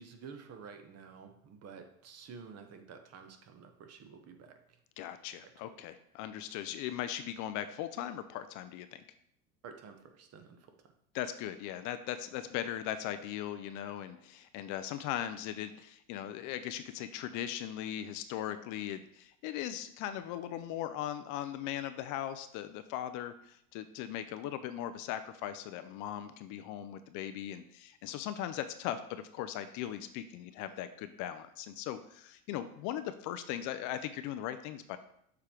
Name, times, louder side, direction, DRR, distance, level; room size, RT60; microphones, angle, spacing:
voice 1, 0.0-4.8 5.4-5.5 9.6-10.9, right 6 dB, 35° right, 6 dB, 1.0 m, -51 dB
voice 2, 5.0-9.0 11.1-35.0, left 11 dB, 45° left, 10 dB, 0.5 m, -39 dB
6.8 x 3.5 x 4.5 m, 0.71 s
hypercardioid pair, 95°, 41 cm